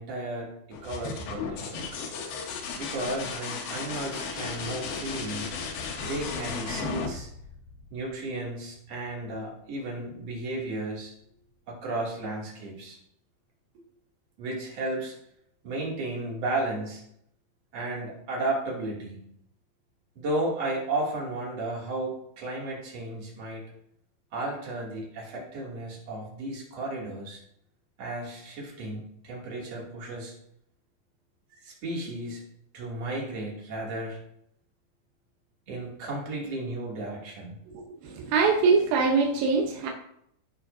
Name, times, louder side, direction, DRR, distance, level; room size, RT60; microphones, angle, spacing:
voice 1, 0.0-1.8 2.8-5.6 6.0-7.3 7.9-11.1 11.7-13.0 14.4-15.1 15.6-17.0 17.7-19.2 20.2-23.6 24.3-27.4 28.0-30.3 31.5-32.4 32.7-34.2 35.7-37.6, right 2 dB, 45° right, -3 dB, 3.4 m, -34 dB
sound 1, 0.7-8.3 10.1-10.6, left 5 dB, 80° left, 3.1 m, -35 dB
voice 2, 38.0-39.9, right 4 dB, 80° right, 1 dB, 2.8 m, -23 dB
16.0 x 6.6 x 2.7 m, 0.73 s
omnidirectional pair, 4.2 m